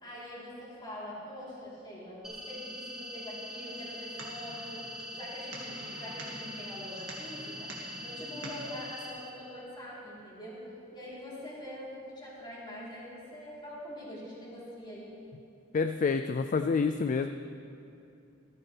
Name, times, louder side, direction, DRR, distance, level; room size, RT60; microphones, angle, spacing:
voice 1, 0.0-4.8 5.1-7.7 8.0-10.6 10.9-15.1, left 1 dB, 25° left, -8 dB, 3.6 m, -44 dB
sound 1, 2.2-9.1, equal, 5° right, 2.6 m, -43 dB
sound 2, 3.7-8.7, right 2 dB, 65° right, 2.1 m, -47 dB
voice 2, 15.7-17.3, left 5 dB, 40° left, 8 dB, 0.3 m, -28 dB
14.5 x 14.5 x 3.4 m, 2.6 s
head